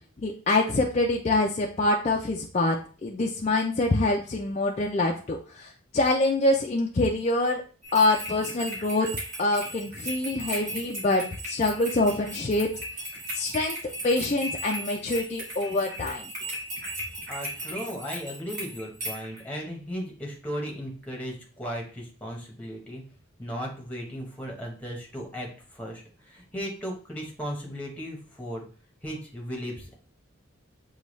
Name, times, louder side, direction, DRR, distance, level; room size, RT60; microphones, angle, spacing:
voice 1, 0.2-7.6 7.9-9.1 9.4-12.7 13.3-13.8 14.0-16.3, left 2 dB, 30° left, 0 dB, 0.4 m, -25 dB
sound 1, 7.8-19.4, right 1 dB, 40° right, 1.6 m, -37 dB
voice 2, 17.3-23.0 23.4-25.5 25.7-26.0 26.3-28.6 29.0-29.9, equal, 5° left, 0 dB, 0.9 m, -36 dB
6.7 x 2.3 x 3.0 m, 0.39 s
head